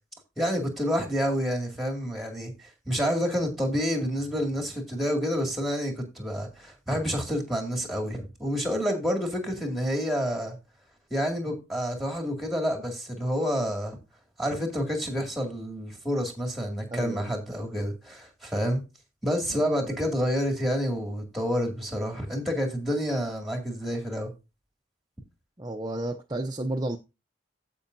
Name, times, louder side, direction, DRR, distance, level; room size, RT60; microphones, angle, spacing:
voice 1, 0.4-10.6 11.1-14.0 14.4-18.8 19.2-24.3, equal, ahead, 2.2 m, -29 dB
voice 2, 16.9-17.3 19.5-20.1 25.6-27.0, right 1 dB, 20° right, 0.6 m, -33 dB
16.0 x 5.4 x 2.6 m
head